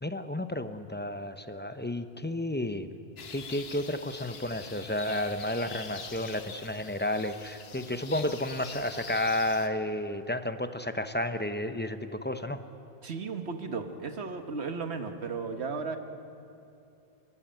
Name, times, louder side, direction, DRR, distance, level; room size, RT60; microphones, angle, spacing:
voice 1, 0.0-2.9 3.3-12.6, left 1 dB, 10° left, 9 dB, 0.6 m, -32 dB
sound 1, 3.2-9.7, left 5 dB, 70° left, 1.3 m, -44 dB
voice 2, 13.0-16.0, right 4 dB, 90° right, 7 dB, 1.5 m, -35 dB
28.0 x 12.5 x 8.9 m, 2.7 s
omnidirectional pair, 1.1 m